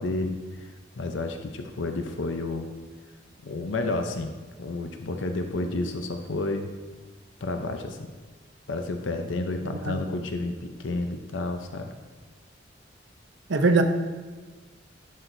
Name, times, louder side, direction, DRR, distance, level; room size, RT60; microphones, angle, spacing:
voice 1, 0.0-2.7 3.4-4.3 4.6-6.7 7.4-8.1 8.7-11.9, left 2 dB, 70° left, 5 dB, 0.6 m, -31 dB
voice 2, 9.7-10.0 13.5-13.8, right 3 dB, 65° right, 6 dB, 0.7 m, -22 dB
11.5 x 6.4 x 2.7 m, 1.4 s
head